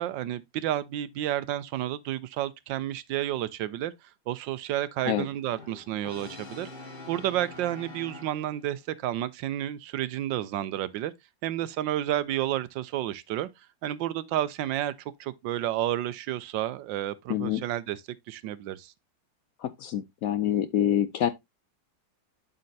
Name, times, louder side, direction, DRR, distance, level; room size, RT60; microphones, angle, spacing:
voice 1, 0.0-3.9 4.3-6.7 7.1-11.1 11.4-13.5 13.8-14.9 15.2-18.0 18.3-18.9, right 13 dB, 80° right, 1.3 m, -31 dB
Brass instrument, 5.0-8.8, left 2 dB, 25° left, 2.3 m, -45 dB
voice 2, 17.3-17.6 19.6-21.3, left 11 dB, 75° left, 0.8 m, -26 dB
11.5 x 4.3 x 2.7 m
omnidirectional pair, 2.0 m